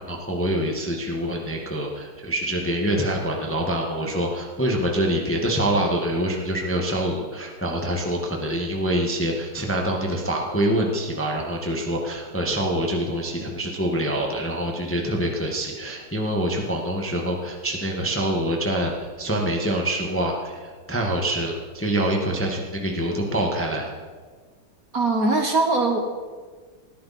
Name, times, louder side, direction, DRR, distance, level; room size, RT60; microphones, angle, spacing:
voice 1, 0.1-23.9, right 1 dB, 5° left, 0 dB, 1.5 m, -25 dB
voice 2, 24.9-26.0, right 3 dB, 45° right, 3 dB, 1.5 m, -21 dB
21.0 x 13.5 x 4.3 m, 1.5 s
omnidirectional pair, 2.4 m